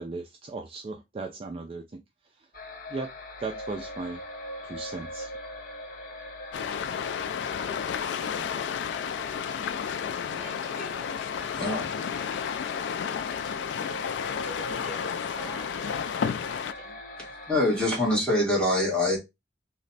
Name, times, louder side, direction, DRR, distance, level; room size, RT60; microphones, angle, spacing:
voice 1, 0.0-2.5 2.9-3.1 3.4-4.2 4.6-5.3, right 3 dB, 30° right, 0.3 m, -37 dB
sound 1, 2.5-18.2, left 1 dB, 50° left, 0.7 m, -42 dB
sound 2, 6.5-16.7, left 7 dB, 75° left, 0.3 m, -32 dB
voice 2, 10.4-17.0, right 1 dB, 15° right, 1.9 m, -48 dB
voice 3, 11.5-11.8 17.5-19.2, left 1 dB, 5° left, 1.4 m, -24 dB
3.1 x 2.1 x 3.9 m
head